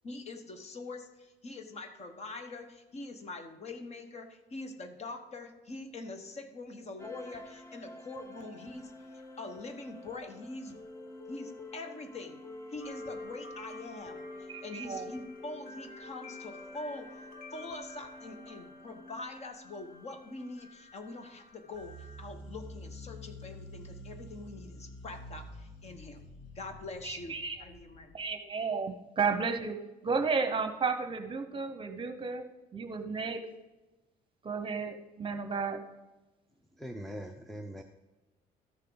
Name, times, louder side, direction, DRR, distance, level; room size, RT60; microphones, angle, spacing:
voice 1, 0.0-10.9 11.3-12.4 12.7-17.2 17.5-26.3 26.5-28.2, left 2 dB, 40° left, 7 dB, 1.3 m, -44 dB
sound 1, 7.0-21.1, left 1 dB, 15° left, 1.1 m, -48 dB
sound 2, 12.8-22.2, left 2 dB, 60° left, 1.3 m, -53 dB
voice 2, 14.5-15.1 27.0-27.6 28.1-29.8 30.0-32.4 32.7-33.4 34.4-35.8, right 5 dB, 30° right, 8 dB, 1.0 m, -33 dB
sound 3, 21.7-28.3, equal, 85° left, 1.9 m, -48 dB
voice 3, 36.8-37.8, equal, ahead, 4 dB, 0.6 m, -41 dB
13.5 x 6.6 x 4.0 m, 1.1 s
cardioid pair, 110°, 17 cm